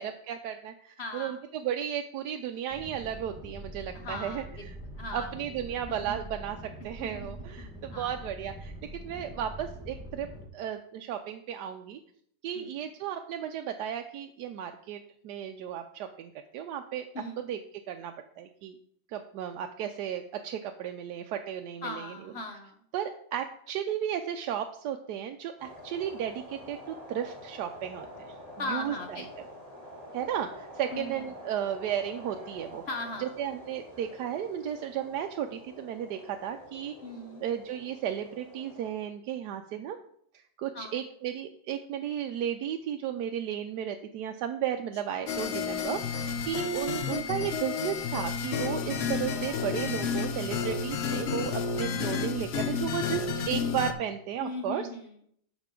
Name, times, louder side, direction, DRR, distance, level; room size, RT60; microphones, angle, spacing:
voice 1, 0.0-4.4 5.1-6.6 6.8-10.3 10.5-12.0 12.4-15.0 15.2-17.1 17.5-17.6 17.9-18.7 19.1-22.1 22.9-28.4 28.7-29.2 30.1-32.8 33.2-36.9 37.4-40.0 40.3-54.8, right 9 dB, 75° right, 5 dB, 1.1 m, -34 dB
voice 2, 1.0-1.4 3.9-4.7 4.9-5.3 5.9-6.3 7.0-7.6 7.9-8.2 12.5-12.9 17.1-17.4 21.8-22.8 28.6-29.5 30.9-31.2 32.9-33.4 37.0-37.4 40.7-41.0 45.1-45.3 46.4-46.7 49.3-49.9 54.4-55.2, left 2 dB, 45° left, 5 dB, 0.9 m, -39 dB
sound 1, 2.7-10.5, right 1 dB, 5° right, 1.1 m, -44 dB
sound 2, 25.6-38.9, equal, 20° left, 2.4 m, -47 dB
sound 3, 45.3-53.9, left 5 dB, 90° left, 0.5 m, -31 dB
12.0 x 5.1 x 3.8 m, 0.66 s
omnidirectional pair, 1.9 m